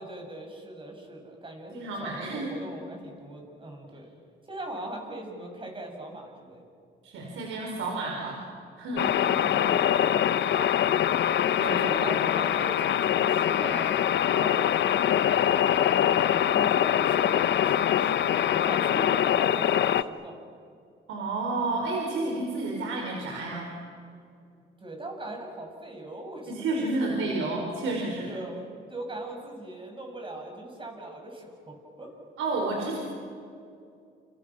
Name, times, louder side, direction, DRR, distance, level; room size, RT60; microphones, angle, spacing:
voice 1, 0.0-4.1 4.4-6.7 9.3-10.3 10.6-10.7 11.6-13.9 14.3-16.2 16.5-20.4 24.8-27.1 28.3-32.1, right 1 dB, 25° right, 1 dB, 7.7 m, -40 dB
voice 2, 1.7-2.5 7.0-8.4 8.8-9.1 11.5-11.9 21.1-23.7 26.5-28.3 32.4-33.0, right 2 dB, 85° right, 0 dB, 4.5 m, -30 dB
sound 1, 9.0-20.0, left 10 dB, 65° left, 0.9 m, -24 dB
29.5 x 28.0 x 6.3 m, 2.4 s
cardioid pair, 90°, 20 cm